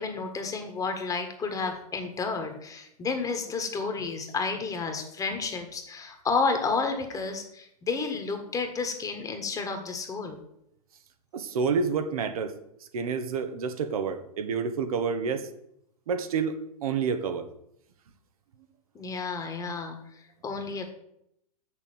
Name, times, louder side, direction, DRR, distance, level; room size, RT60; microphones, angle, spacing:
voice 1, 0.0-10.4 18.9-20.9, left 4 dB, 20° left, 5 dB, 1.6 m, -31 dB
voice 2, 11.3-12.5 12.9-15.5 16.1-17.5, right 5 dB, 70° right, 9 dB, 1.3 m, -29 dB
6.8 x 6.7 x 7.9 m, 0.77 s
hypercardioid pair, 125°, 19 cm